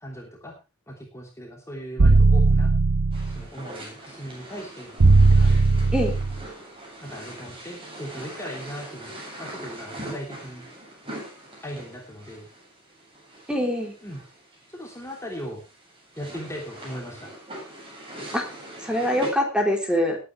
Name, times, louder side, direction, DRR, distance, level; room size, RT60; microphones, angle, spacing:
voice 1, 0.0-0.6 0.9-2.7 3.3-4.9 5.3-5.5 7.0-9.1 9.4-10.6 11.6-12.5 14.0-14.2 14.7-15.6 16.2-17.3, equal, 15° left, 0 dB, 3.0 m, -38 dB
sound 1, 2.0-3.4 5.0-6.4, right 3 dB, 85° right, 0.9 m, -17 dB
sound 2, 3.1-19.3, right 1 dB, 25° right, 7.8 m, -42 dB
voice 2, 13.5-13.9 18.3-18.5 18.8-20.2, equal, 5° right, 2 dB, 3.6 m, -24 dB
20.5 x 9.6 x 3.3 m, 0.30 s
head